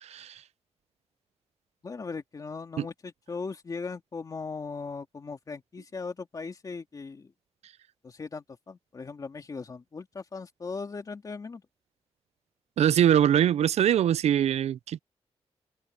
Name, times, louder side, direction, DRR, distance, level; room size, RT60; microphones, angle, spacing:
voice 1, 0.0-0.3 2.8-2.9 12.8-15.0, right 10 dB, 75° right, 0.4 m, -23 dB
voice 2, 1.8-7.3 8.0-11.6, left 4 dB, 35° left, 2.5 m, -38 dB
wide cardioid pair, 165°, 11 cm